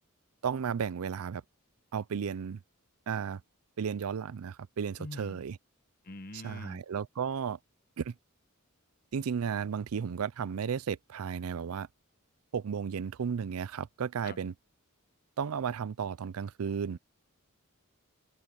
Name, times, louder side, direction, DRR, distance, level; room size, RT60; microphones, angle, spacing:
voice 1, 0.4-1.4 1.9-2.6 3.1-3.4 3.8-5.6 6.3-7.6 8.0-8.1 9.1-11.9 12.5-14.5 15.4-17.0, right 7 dB, 80° right, 0.4 m, -34 dB
voice 2, 5.0-5.4 6.0-6.8 14.2-14.4, left 2 dB, 45° left, 1.2 m, -44 dB
head